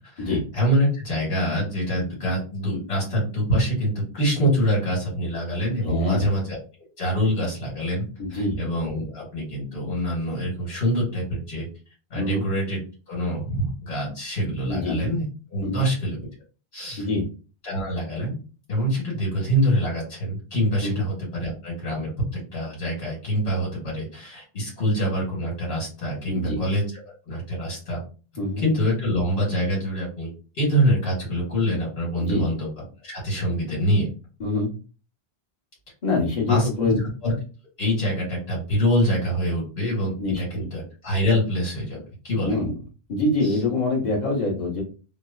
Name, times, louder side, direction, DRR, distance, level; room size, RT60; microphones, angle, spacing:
voice 1, 0.0-6.6 7.0-11.7 12.1-12.8 13.1-15.2 15.5-16.3 16.7-17.1 17.6-18.4 18.7-26.8 27.2-28.0 28.6-34.1 36.5-36.9 37.2-37.3 37.8-42.0 42.2-42.6 43.4-43.6, equal, 80° left, -6 dB, 1.6 m, -25 dB
voice 2, 5.8-6.3 8.2-8.6 12.2-12.4 14.7-15.1 15.6-15.8 17.0-17.2 20.8-21.0 26.3-26.6 28.4-28.6 32.2-32.5 34.4-34.7 36.0-37.0 40.2-40.7 42.4-42.7 43.1-44.8, left 2 dB, 45° left, -2 dB, 1.1 m, -25 dB
3.1 x 2.0 x 2.3 m, 0.36 s
omnidirectional pair, 1.0 m